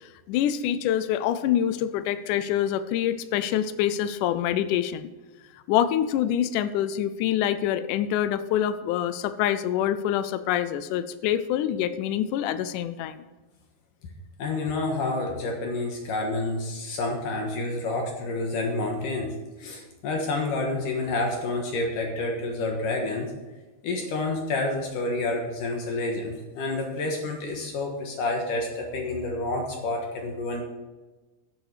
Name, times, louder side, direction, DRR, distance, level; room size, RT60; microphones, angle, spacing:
voice 1, 0.3-5.1 5.7-13.2, left 10 dB, 90° left, 12 dB, 1.8 m, -26 dB
voice 2, 14.4-23.3 23.8-30.6, left 2 dB, 65° left, 1 dB, 2.8 m, -29 dB
14.5 x 8.0 x 5.0 m, 1.2 s
omnidirectional pair, 4.4 m